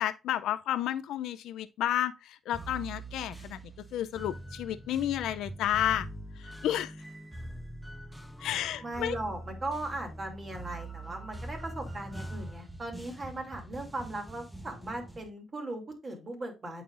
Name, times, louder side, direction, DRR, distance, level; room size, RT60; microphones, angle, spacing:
voice 1, 0.0-3.6 3.9-6.1 6.4-6.9 8.4-9.2, left 11 dB, 80° left, 0.3 m, -31 dB
sound 1, 2.5-15.3, right 1 dB, 5° right, 0.9 m, -43 dB
voice 2, 8.8-16.8, right 2 dB, 35° right, 2.5 m, -38 dB
8.4 x 5.4 x 2.5 m
cardioid pair, 90°, 0 cm